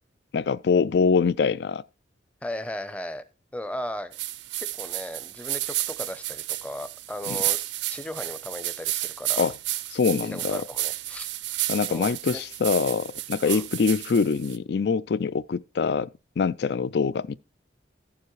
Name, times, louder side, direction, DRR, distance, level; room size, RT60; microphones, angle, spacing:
voice 1, 0.3-1.8 7.3-7.4 9.4-9.6 9.9-10.6 11.7-16.1 16.4-17.4, left 5 dB, 65° left, 0.4 m, -24 dB
voice 2, 2.4-3.2 3.5-4.2 4.8-7.6 7.9-9.5 10.2-11.3 11.9-12.4 13.4-13.6, left 1 dB, 5° left, 0.7 m, -36 dB
sound 1, 4.1-14.6, right 16 dB, 80° right, 0.5 m, -32 dB
15.0 x 7.1 x 3.1 m
head